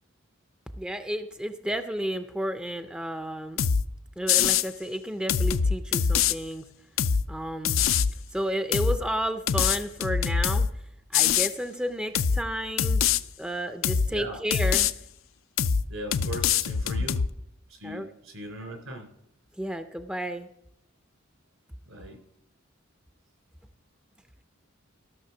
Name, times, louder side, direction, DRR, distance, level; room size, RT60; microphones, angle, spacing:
voice 1, 0.8-3.6 4.2-6.7 7.3-7.8 8.3-10.7 11.1-13.0 13.4-14.9 17.0-17.1 17.8-18.1 19.6-20.5, equal, 5° right, 8 dB, 0.5 m, -32 dB
sound 1, 3.6-3.8 4.3-4.7 5.3-6.3 7.0-7.2 7.6-8.1 8.7-9.0 9.5-10.7 11.1-11.5 12.1-12.4 12.8-13.2 13.8-14.1 14.5-14.9 15.6-15.8 16.1-17.3, left 7 dB, 75° left, 0.5 m, -23 dB
voice 2, 14.1-14.4 15.9-17.2 17.7-19.1 21.9-22.2, right 1 dB, 80° right, 4 dB, 3.5 m, -38 dB
14.0 x 6.5 x 5.8 m, 0.78 s
head